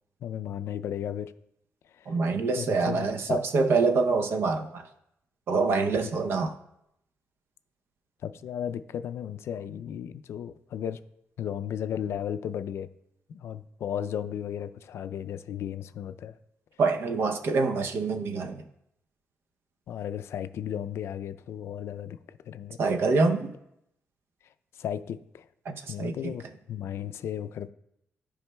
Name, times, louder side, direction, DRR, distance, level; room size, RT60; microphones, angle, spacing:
voice 1, 0.2-1.3 1.8-2.2 2.5-3.4 6.0-6.1 8.2-11.0 11.4-12.9 13.3-16.4 19.9-22.8 24.7-25.5 25.9-27.7, left 9 dB, 70° left, 11 dB, 0.3 m, -35 dB
voice 2, 2.1-4.9 5.5-6.5 16.8-18.6 22.8-23.5 25.7-26.3, right 4 dB, 60° right, 7 dB, 0.6 m, -26 dB
13.5 x 4.8 x 2.2 m, 0.81 s
wide cardioid pair, 170°, 5 cm